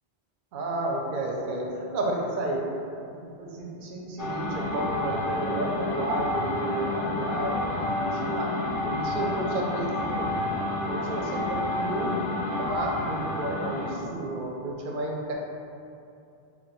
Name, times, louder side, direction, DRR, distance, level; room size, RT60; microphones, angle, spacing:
voice 1, 0.5-7.7 8.0-10.6 10.9-12.2 12.5-15.3, right 1 dB, 60° right, -1 dB, 0.7 m, -32 dB
sound 1, 4.2-14.0, left 2 dB, 60° left, 0.7 m, -30 dB
3.7 x 2.2 x 4.2 m, 2.6 s
omnidirectional pair, 1.1 m